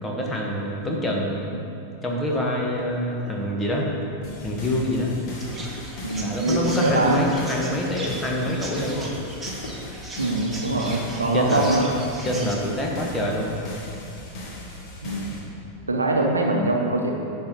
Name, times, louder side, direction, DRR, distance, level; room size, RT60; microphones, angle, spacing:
voice 1, 0.0-1.5 2.0-3.9 4.4-5.1 6.2-9.1 10.7-11.0 11.3-11.6 12.2-13.5, left 1 dB, 15° left, -1 dB, 1.4 m, -26 dB
sound 1, 2.3-9.9, left 2 dB, 55° left, 1.2 m, -44 dB
sound 2, 4.2-15.4, left 1 dB, 35° left, 1.8 m, -39 dB
Chirp tweet, 5.4-12.5, right 2 dB, 10° right, 1.2 m, -38 dB
voice 2, 6.0-7.2 8.4-8.5 10.2-11.9 15.0-15.3 15.9-17.1, right 2 dB, 80° right, 1 dB, 0.9 m, -23 dB
10.5 x 4.4 x 5.3 m, 2.7 s
figure-of-eight pair, 90°, 0 cm